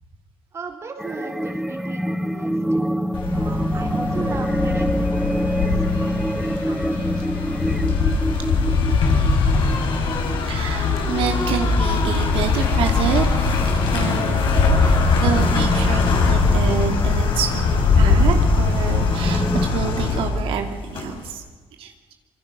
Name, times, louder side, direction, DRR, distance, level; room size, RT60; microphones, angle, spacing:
voice 1, 0.5-2.8 3.3-7.9, right 4 dB, 30° right, 3 dB, 3.9 m, -38 dB
sound 1, 1.0-11.6 12.2-12.3 12.6-12.8 13.2-19.7, equal, 5° right, 0.7 m, -27 dB
sound 2, 3.1-21.3, left 4 dB, 65° left, 6.9 m, -21 dB
voice 2, 10.5-14.5 14.8-21.4 21.8-22.1, right 7 dB, 75° right, 4 dB, 2.7 m, -28 dB
26.5 x 25.5 x 6.9 m, 1.4 s
cardioid pair, 170°, 9 cm